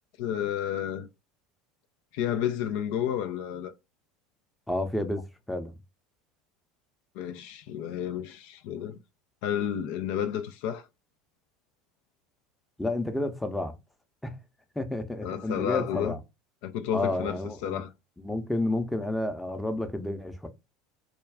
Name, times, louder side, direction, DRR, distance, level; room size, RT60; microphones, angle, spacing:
voice 1, 0.2-1.1 2.1-3.7 7.2-9.0 9.4-10.8 15.2-16.1 16.6-17.9, left 9 dB, 65° left, 0.3 m, -31 dB
voice 2, 4.7-5.7 12.8-13.7 14.2-14.4 14.8-16.2 16.9-17.8 18.2-20.5, left 2 dB, 5° left, 0.6 m, -30 dB
2.3 x 2.3 x 3.3 m
hypercardioid pair, 75°, 0 cm